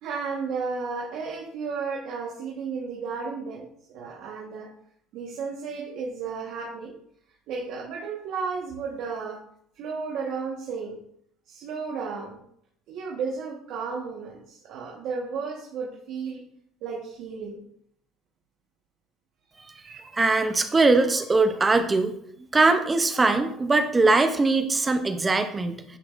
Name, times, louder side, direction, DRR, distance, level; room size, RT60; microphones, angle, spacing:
voice 1, 0.0-4.7 5.1-6.9 7.5-9.4 9.7-11.0 11.5-12.4 12.9-16.4 16.8-17.6 19.8-20.0, right 5 dB, 60° right, -2 dB, 1.2 m, -33 dB
voice 2, 20.2-22.1 22.5-25.8, right 3 dB, 15° right, 8 dB, 0.5 m, -21 dB
9.8 x 4.6 x 2.5 m, 0.68 s
cardioid pair, 155°, 0 cm